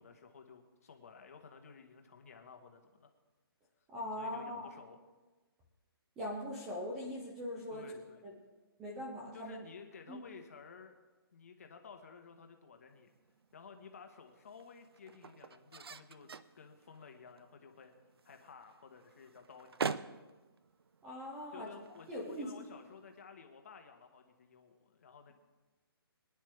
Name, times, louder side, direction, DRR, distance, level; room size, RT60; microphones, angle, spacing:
voice 1, 0.0-3.1 4.2-5.0 7.7-8.2 9.3-11.0 11.3-13.1 13.5-17.9 18.2-20.3 21.5-25.3, left 5 dB, 35° left, 5 dB, 1.4 m, -54 dB
voice 2, 3.9-4.7 6.2-7.8 8.2-8.3 8.8-9.6 10.1-10.2 21.0-21.7 22.1-22.5, left 1 dB, 5° right, -4 dB, 0.4 m, -41 dB
sound 1, 12.9-23.2, right 5 dB, 75° right, 0.6 m, -46 dB
23.5 x 10.0 x 3.4 m, 1.2 s
hypercardioid pair, 180°, 13 cm